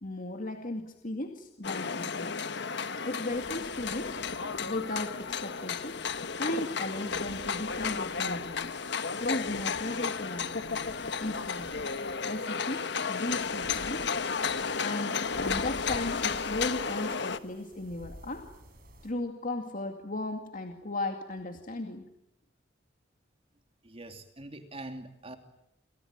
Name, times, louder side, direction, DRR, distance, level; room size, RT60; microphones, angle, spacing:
voice 1, 0.0-2.5 3.0-4.2 4.6-6.0 6.4-8.7 9.2-10.6 11.2-11.7 12.2-14.1 14.8-18.5 19.0-22.0, left 2 dB, 45° left, 4 dB, 2.3 m, -36 dB
sound 1, 1.6-17.4, left 5 dB, 60° left, 1.3 m, -33 dB
sound 2, 3.3-19.1, right 1 dB, 50° right, 5.9 m, -52 dB
voice 2, 23.8-25.4, right 2 dB, 30° right, 6 dB, 2.8 m, -43 dB
28.5 x 23.0 x 9.0 m, 0.79 s
head